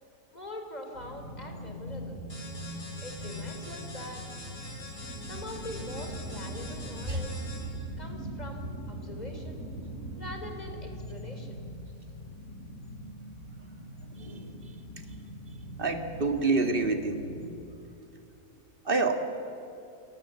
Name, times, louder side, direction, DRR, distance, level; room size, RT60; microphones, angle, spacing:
voice 1, 0.3-2.2 3.0-4.3 5.3-7.5 8.0-9.6 10.2-11.6, left 1 dB, 25° left, 3 dB, 3.7 m, -43 dB
sound 1, 0.9-17.6, equal, 70° left, 4.2 m, -43 dB
sound 2, 2.3-7.8, left 2 dB, 90° left, 8.3 m, -45 dB
sound 3, 5.0-10.5, right 1 dB, 50° right, 8.2 m, -41 dB
voice 2, 15.8-17.2 18.8-19.2, right 3 dB, 35° right, 6 dB, 2.1 m, -27 dB
29.0 x 18.5 x 7.5 m, 2.8 s
omnidirectional pair, 1.7 m